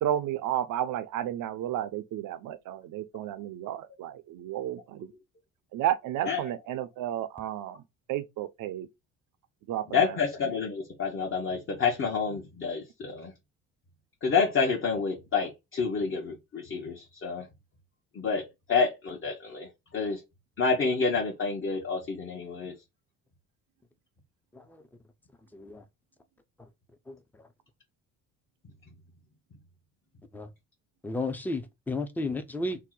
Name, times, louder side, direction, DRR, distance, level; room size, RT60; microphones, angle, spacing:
voice 1, 0.0-5.1 5.7-7.8 8.1-8.9 9.7-10.2, right 11 dB, 50° right, 0.6 m, -32 dB
voice 2, 9.9-13.3 14.2-17.4 18.2-18.4 18.7-19.7 19.9-20.2 20.6-22.8, left 5 dB, 30° left, 0.8 m, -28 dB
voice 3, 24.5-24.8 25.5-25.8 26.6-26.7 27.1-27.5 30.3-30.5 31.0-32.8, left 2 dB, 5° left, 0.5 m, -34 dB
2.8 x 2.1 x 3.8 m
hypercardioid pair, 60°, 40 cm